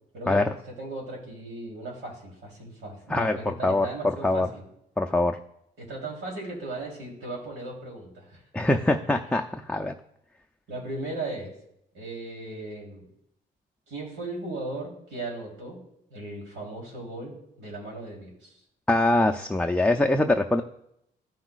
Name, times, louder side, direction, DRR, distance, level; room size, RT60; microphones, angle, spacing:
voice 1, 0.1-4.6 5.8-8.4 10.7-11.5 11.9-13.1 13.9-15.8 16.1-18.6, right 2 dB, 75° right, -2 dB, 3.3 m, -37 dB
voice 2, 3.1-4.5 5.0-5.4 8.5-9.9 18.9-20.6, left 2 dB, 5° left, 2 dB, 0.4 m, -23 dB
14.0 x 5.9 x 2.4 m, 0.77 s
cardioid pair, 90°, 20 cm